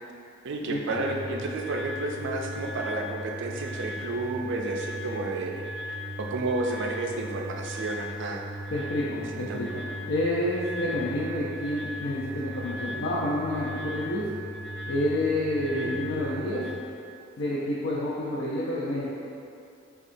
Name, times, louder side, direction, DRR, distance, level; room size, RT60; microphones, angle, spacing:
voice 1, 0.4-5.7 6.2-8.4 9.5-9.6 15.7-16.0, right 2 dB, 65° right, 1 dB, 0.4 m, -31 dB
sound 1, 0.9-16.7, equal, 5° left, 0.8 m, -37 dB
voice 2, 8.7-14.3 14.9-16.6 17.4-19.1, left 1 dB, 80° left, -7 dB, 0.5 m, -29 dB
6.2 x 2.4 x 2.6 m, 2.6 s
head